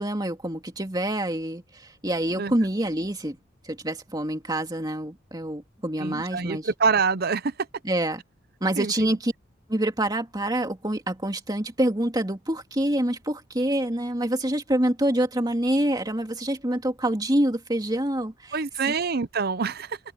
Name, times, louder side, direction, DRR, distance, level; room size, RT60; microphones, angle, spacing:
voice 1, 0.0-3.4 3.6-6.7 7.8-8.2 8.6-9.3 9.7-18.6 18.9-19.0, right 1 dB, 20° right, 2.4 m, -26 dB
voice 2, 6.0-7.5 8.8-9.1 18.5-20.0, right 5 dB, 50° right, 0.7 m, -26 dB
head